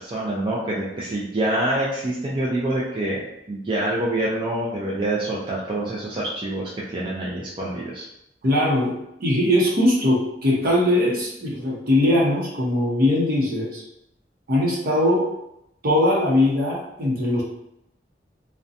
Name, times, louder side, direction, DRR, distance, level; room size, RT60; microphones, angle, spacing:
voice 1, 0.0-3.2 3.5-8.1, right 1 dB, 30° right, -6 dB, 0.4 m, -26 dB
voice 2, 8.4-8.9 9.2-13.8 14.5-15.3 15.8-17.4, left 1 dB, 55° right, -4 dB, 0.7 m, -20 dB
2.7 x 2.1 x 2.4 m, 0.81 s
head